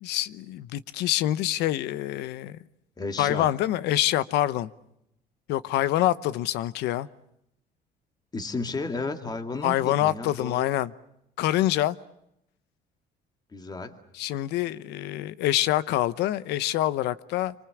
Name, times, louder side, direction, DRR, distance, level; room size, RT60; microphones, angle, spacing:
voice 1, 0.0-2.6 3.2-4.7 5.5-7.1 9.6-10.9 11.4-12.0 14.1-17.5, left 14 dB, 90° left, 0.9 m, -26 dB
voice 2, 3.0-3.5 8.3-10.7 13.5-14.0, left 3 dB, 25° left, 2.4 m, -33 dB
27.0 x 25.0 x 7.2 m
cardioid pair, 110°, 17 cm